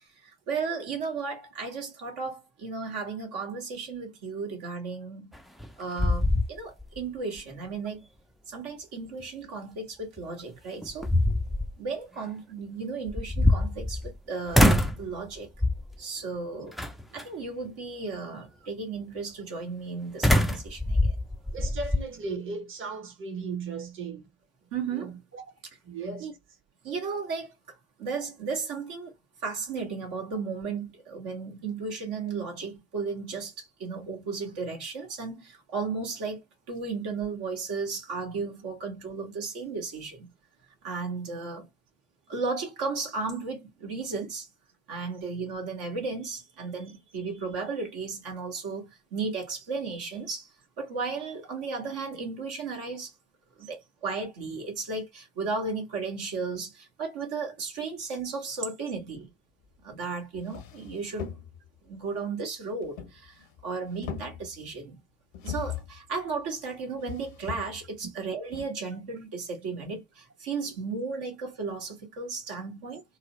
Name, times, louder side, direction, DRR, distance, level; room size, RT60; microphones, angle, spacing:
voice 1, 0.2-5.3 5.8-8.1 8.5-11.1 11.8-15.5 16.0-16.7 17.1-21.1 21.6-21.7 24.7-25.1 26.2-26.3 26.8-29.1 29.4-36.4 36.7-40.3 40.8-41.7 42.3-44.5 44.9-50.5 50.8-53.1 53.6-59.3 59.8-61.3 61.8-65.0 65.4-73.0, right 4 dB, 65° right, 1.4 m, -34 dB
sound 1, 5.3-5.7 6.0-7.0 7.4-7.5 10.2-10.3 10.8-11.7 13.1-14.2 14.5-15.0 15.6-16.0 16.8-17.2 20.2-22.1, left 1 dB, ahead, 0.3 m, -24 dB
voice 2, 21.5-24.3 24.9-25.4 25.8-26.3 53.6-53.7 63.7-63.8, right 4 dB, 30° right, 0.9 m, -36 dB
sound 2, 59.9-60.0 60.3-61.8 62.8-63.6 63.9-64.7 65.3-66.0 67.0-68.0 68.5-68.6, left 8 dB, 75° left, 0.7 m, -39 dB
3.8 x 2.0 x 3.0 m
figure-of-eight pair, 45°, 41 cm